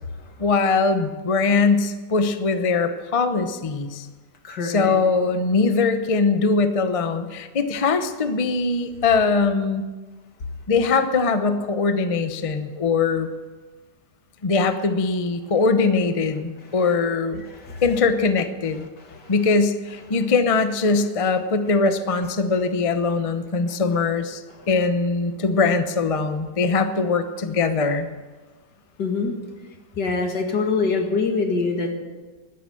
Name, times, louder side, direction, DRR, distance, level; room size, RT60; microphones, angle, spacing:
voice 1, 0.4-4.1 4.6-9.9 10.7-13.3 14.4-17.4 17.8-18.9 19.3-24.4 24.7-28.1, left 4 dB, 35° left, 9 dB, 0.5 m, -21 dB
voice 2, 4.4-5.0 17.5-17.8 19.0-19.3 29.0-29.3 30.0-31.9, left 4 dB, 70° left, 3 dB, 2.5 m, -24 dB
15.0 x 12.0 x 7.6 m, 1.3 s
omnidirectional pair, 1.9 m